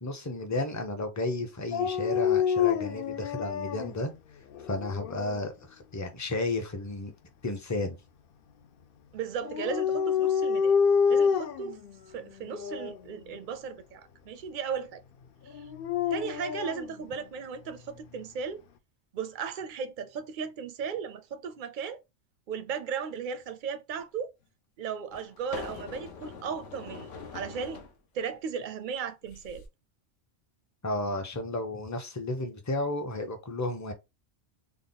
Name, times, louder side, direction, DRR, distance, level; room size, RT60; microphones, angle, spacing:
voice 1, 0.0-4.1 4.6-7.1 7.4-8.0 30.8-33.9, left 2 dB, 20° left, 0.5 m, -33 dB
Dog, 1.7-3.9 4.5-5.3 9.4-11.7 12.5-13.0 15.5-16.8, left 7 dB, 60° left, 0.6 m, -27 dB
voice 2, 9.1-10.8 11.1-11.8 12.1-15.0 15.5-15.7 16.1-18.6 19.1-22.0 22.5-24.3 24.8-27.8 28.1-29.6, right 6 dB, 60° right, 0.5 m, -36 dB
sound 1, 24.0-24.1 25.1-28.0 29.2-29.7, left 4 dB, 85° left, 1.1 m, -43 dB
3.5 x 2.1 x 3.9 m
omnidirectional pair, 1.2 m